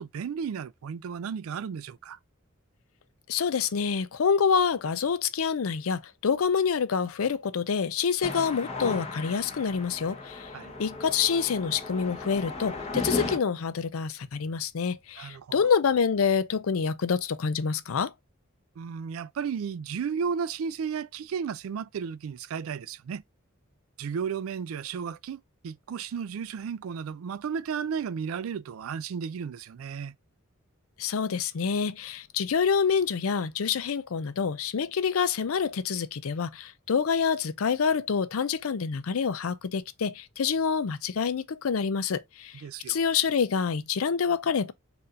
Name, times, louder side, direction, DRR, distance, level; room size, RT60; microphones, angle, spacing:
voice 1, 0.0-2.2 10.5-10.7 15.2-15.7 18.8-23.2 24.0-30.1 42.6-43.0, right 6 dB, 80° right, 0.4 m, -34 dB
voice 2, 3.3-10.5 10.8-18.1 31.0-42.6 42.9-44.7, left 6 dB, 90° left, 0.5 m, -27 dB
sound 1, 8.2-13.4, left 3 dB, 30° left, 1.0 m, -35 dB
4.2 x 2.6 x 3.7 m
head